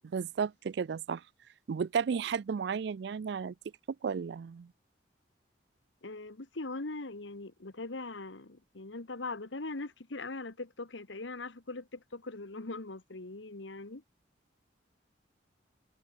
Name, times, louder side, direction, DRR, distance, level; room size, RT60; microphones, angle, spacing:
voice 1, 0.1-1.2 1.7-3.5 4.0-4.7, right 6 dB, 60° right, 0.4 m, -33 dB
voice 2, 6.0-14.0, left 3 dB, 85° left, 1.5 m, -41 dB
head